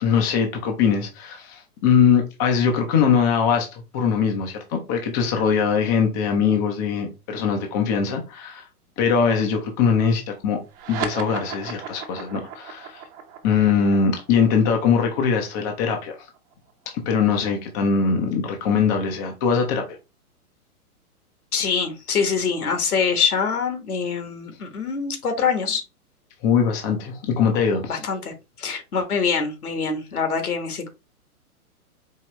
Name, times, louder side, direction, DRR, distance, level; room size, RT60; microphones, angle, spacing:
voice 1, 0.0-3.7 3.9-8.6 9.0-10.6 10.9-13.0 13.4-16.1 17.1-19.8 26.4-27.9, left 6 dB, 15° left, 0.4 m, -21 dB
sound 1, 10.7-17.5, right 7 dB, 25° right, 0.7 m, -36 dB
voice 2, 21.5-25.8 27.9-30.9, left 6 dB, 75° left, 1.5 m, -24 dB
4.6 x 3.1 x 2.9 m
hypercardioid pair, 120°, 44 cm